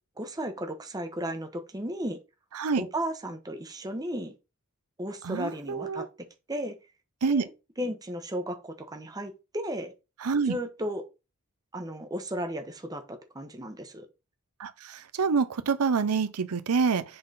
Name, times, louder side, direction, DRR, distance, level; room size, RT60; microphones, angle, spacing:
voice 1, 0.2-2.2 2.8-4.3 5.0-6.7 7.3-7.5 7.8-9.9 10.5-11.0 11.7-14.1, equal, 15° right, 0.9 m, -34 dB
voice 2, 5.2-6.1 7.2-7.4 10.2-10.6 14.6-17.0, right 5 dB, 85° right, 0.6 m, -27 dB
7.6 x 3.8 x 3.9 m
head